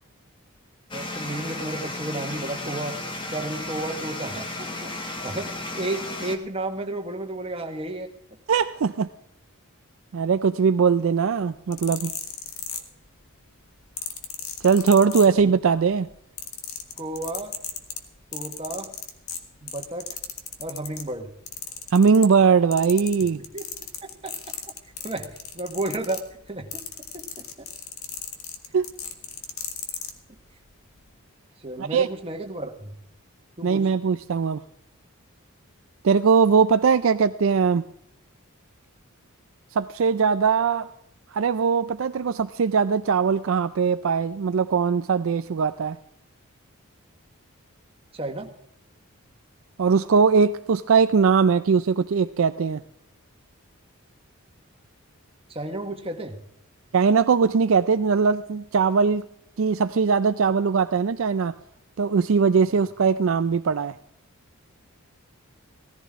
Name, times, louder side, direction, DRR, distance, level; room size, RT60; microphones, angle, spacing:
sound 1, 0.9-6.4, left 2 dB, 20° left, 1.2 m, -34 dB
voice 1, 0.9-3.0 3.3-8.1 17.0-17.6 18.3-18.9 19.6-20.1 20.6-21.3 23.3-23.7 24.0-24.4 25.0-26.8 27.1-27.7 31.6-32.9 33.6-33.9 48.1-48.5 55.5-56.4, right 2 dB, 25° right, 4 dB, 1.4 m, -32 dB
voice 2, 8.5-9.1 10.1-12.1 14.6-16.1 21.9-23.4 28.7-28.9 31.8-32.1 33.6-34.6 36.0-37.8 39.8-40.9 41.3-46.0 49.8-52.8 56.9-59.3 59.6-61.5 62.0-63.9, right 5 dB, 65° right, 11 dB, 0.4 m, -20 dB
sound 2, 11.5-13.3 14.0-15.7 16.0-21.1 21.5-22.5 22.7-30.1 30.9-31.0, left 8 dB, 75° left, 1.6 m, -35 dB
17.0 x 14.5 x 3.6 m, 0.76 s
head